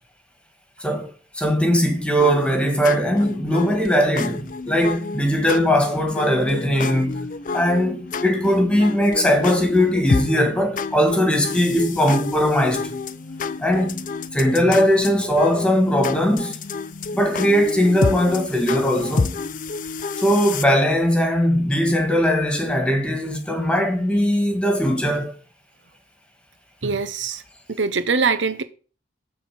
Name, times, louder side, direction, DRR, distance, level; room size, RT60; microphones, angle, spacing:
voice 1, 1.3-12.9 13.6-14.0 14.3-16.6 17.1-19.4 20.2-25.3, equal, 5° left, 1.9 m, -20 dB
sound 1, 2.2-20.6, left 4 dB, 45° left, 0.5 m, -29 dB
voice 2, 26.8-27.4 27.7-28.6, right 4 dB, 70° right, 0.8 m, -22 dB
11.0 x 4.1 x 7.7 m
head